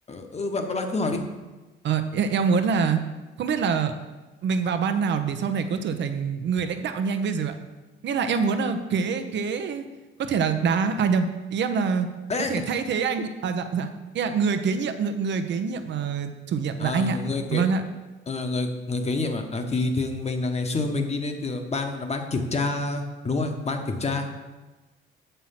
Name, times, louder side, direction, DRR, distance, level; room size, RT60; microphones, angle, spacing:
voice 1, 0.1-1.2 12.3-12.5 16.8-17.6 18.3-24.3, left 3 dB, 30° left, 5 dB, 1.1 m, -28 dB
voice 2, 1.8-3.0 3.4-3.9 4.4-7.5 8.0-9.9 10.2-12.1 12.5-17.2 17.5-17.8, right 6 dB, 65° right, 8 dB, 0.8 m, -25 dB
7.4 x 5.6 x 5.7 m, 1.2 s
cardioid pair, 90°, 20 cm